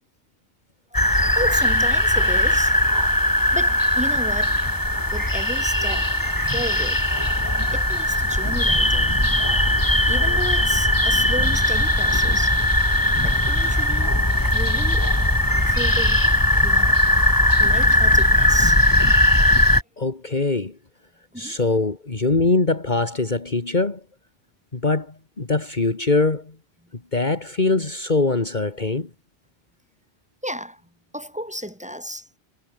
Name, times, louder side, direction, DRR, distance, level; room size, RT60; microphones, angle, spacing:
sound 1, 0.9-19.8, left 1 dB, 20° left, 3.2 m, -19 dB
voice 1, 0.9-2.8 3.5-4.6 5.1-6.1 6.5-7.1 7.7-9.1 10.1-12.6 13.2-14.2 14.5-15.1 15.7-16.2 16.6-17.0 17.6-18.8 19.6-19.7 21.3-21.6 30.4-30.8 31.1-32.3, equal, 5° right, 6.3 m, -33 dB
voice 2, 20.0-20.8 21.4-24.0 24.7-26.6 27.1-29.1, left 3 dB, 45° left, 2.2 m, -22 dB
omnidirectional pair, 1.1 m